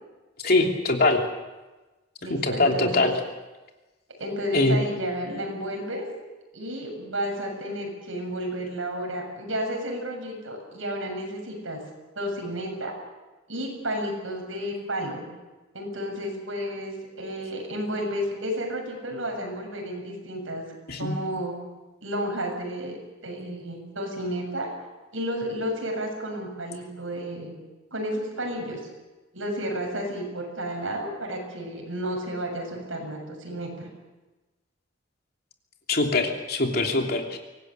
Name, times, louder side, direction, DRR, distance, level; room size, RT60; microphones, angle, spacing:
voice 1, 0.4-1.2 2.3-3.1 4.5-4.8 20.9-21.2 35.9-37.4, left 2 dB, 50° left, 2 dB, 3.0 m, -23 dB
voice 2, 2.2-3.1 4.2-6.1 6.5-11.8 12.2-12.9 13.5-15.3 15.7-20.6 21.0-21.5 22.0-24.7 25.1-27.5 27.9-28.8 29.3-33.9, equal, 80° right, 2 dB, 7.5 m, -32 dB
24.5 x 18.5 x 8.0 m, 1.1 s
head